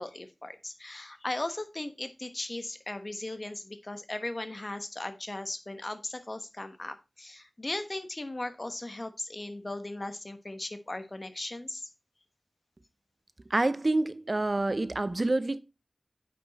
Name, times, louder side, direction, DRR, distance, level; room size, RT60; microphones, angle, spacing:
voice 1, 0.0-11.9, left 2 dB, 45° left, 1.1 m, -37 dB
voice 2, 13.5-15.6, right 2 dB, 50° right, 0.6 m, -27 dB
8.9 x 5.2 x 4.0 m
wide cardioid pair, 55°, 0 cm